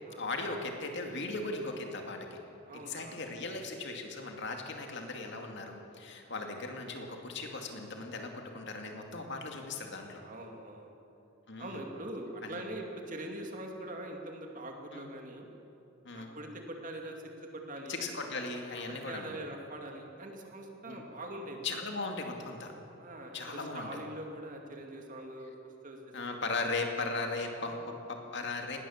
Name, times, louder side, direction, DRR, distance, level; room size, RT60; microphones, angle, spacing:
voice 1, 0.2-2.4 2.7-10.2 11.5-11.8 12.4-12.6 14.9-15.0 16.0-16.3 17.9-19.4 20.9-21.0 21.6-22.7 23.3-23.9 26.1-28.8, left 3 dB, 55° left, 3 dB, 2.4 m, -38 dB
voice 2, 2.7-3.2 4.7-4.9 9.2-9.7 10.2-10.9 11.6-15.5 16.1-18.0 18.8-21.7 23.0-25.5 25.8-26.7 27.7-27.9, right 1 dB, 40° right, 2 dB, 2.5 m, -43 dB
19.5 x 18.0 x 7.3 m, 2.9 s
head